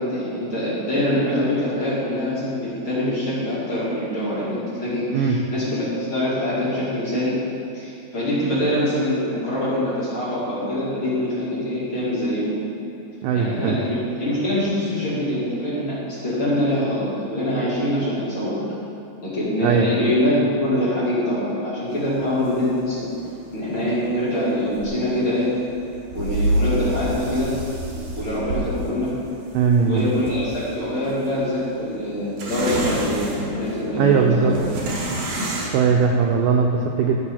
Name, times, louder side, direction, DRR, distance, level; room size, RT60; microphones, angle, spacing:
voice 1, 0.0-7.4 7.7-12.5 13.3-18.6 19.2-20.3 20.6-23.1 23.5-25.5 26.1-27.5 28.2-29.1 29.8-34.6, left 1 dB, 40° left, -10 dB, 2.1 m, -24 dB
voice 2, 13.2-13.8 19.5-19.9 29.5-30.1 34.0-34.6 35.7-37.2, right 6 dB, 90° right, 2 dB, 1.9 m, -19 dB
sound 1, 21.9-35.7, right 1 dB, 65° right, 1.7 m, -30 dB
13.0 x 4.7 x 4.3 m, 2.8 s
omnidirectional pair, 4.4 m